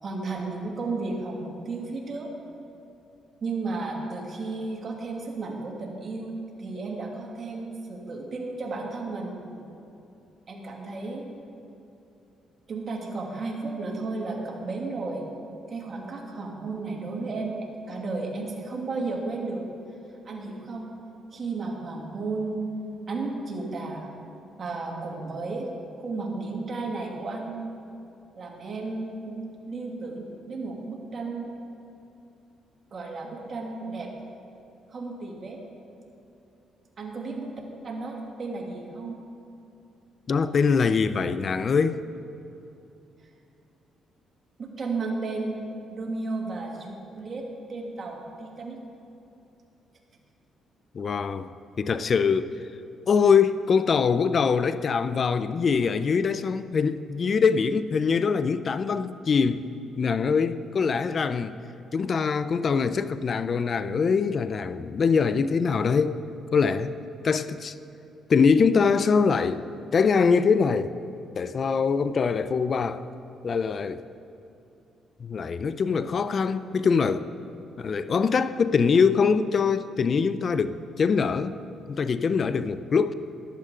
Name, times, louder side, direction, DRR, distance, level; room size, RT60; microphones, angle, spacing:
voice 1, 0.0-2.3 3.4-9.6 10.5-11.2 12.7-15.3 15.7-17.6 17.9-19.7 20.3-21.0 21.3-22.6 23.1-24.1 24.6-25.7 26.0-27.6 28.3-31.5 32.9-34.1 34.9-35.6 37.0-37.5 37.8-39.2 44.6-45.6 45.9-48.8, right 3 dB, 45° right, 2.2 m, -33 dB
voice 2, 40.3-42.0 50.9-51.5 51.8-52.5 53.1-59.6 60.0-61.6 61.9-66.2 66.5-67.0 67.2-67.7 68.3-69.6 69.9-70.9 71.4-73.0 73.4-74.0 75.2-77.3 77.8-81.5 81.9-83.1, left 5 dB, 45° left, 0.5 m, -23 dB
14.0 x 11.0 x 3.8 m
cardioid pair, 90°, 0 cm